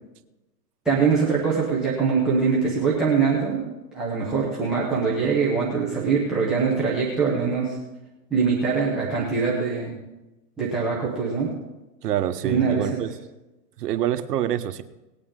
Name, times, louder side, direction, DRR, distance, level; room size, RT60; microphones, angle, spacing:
voice 1, 0.9-7.8 8.3-9.9 10.6-11.5 12.4-13.0, right 5 dB, ahead, -5 dB, 0.3 m, -23 dB
voice 2, 12.0-13.1 13.8-14.8, right 11 dB, 65° right, 10 dB, 1.1 m, -26 dB
19.0 x 8.6 x 3.7 m, 1.0 s
hypercardioid pair, 135°, 50 cm